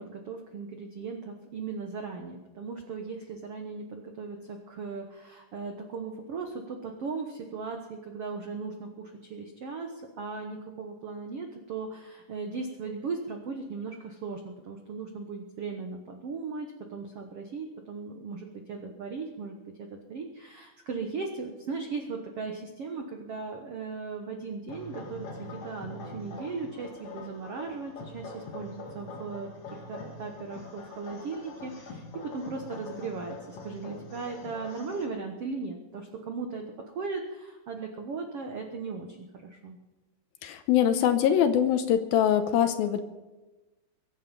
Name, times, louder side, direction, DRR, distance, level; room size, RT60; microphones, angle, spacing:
voice 1, 0.0-32.0 32.3-39.1 39.3-39.8, right 4 dB, 85° right, 3 dB, 1.3 m, -37 dB
sound 1, 24.7-35.1, left 2 dB, 40° left, 2.7 m, -43 dB
voice 2, 40.4-43.0, left 9 dB, 75° left, 9 dB, 2.4 m, -23 dB
23.5 x 9.5 x 5.5 m, 1.1 s
omnidirectional pair, 4.7 m